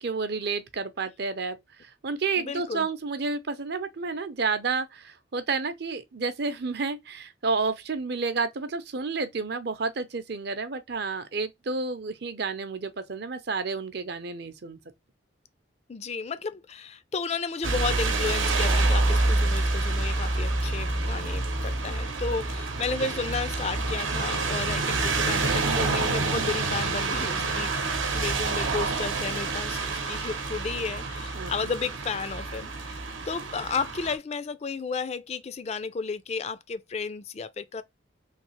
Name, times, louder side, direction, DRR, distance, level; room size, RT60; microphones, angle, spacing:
voice 1, 0.0-14.8 31.4-31.7, right 4 dB, 55° right, 0.6 m, -30 dB
voice 2, 2.4-2.9 15.9-33.0 33.3-37.8, left 4 dB, 35° left, 0.3 m, -33 dB
sound 1, 17.6-34.2, right 3 dB, 85° right, 0.9 m, -27 dB
3.3 x 2.8 x 3.0 m
head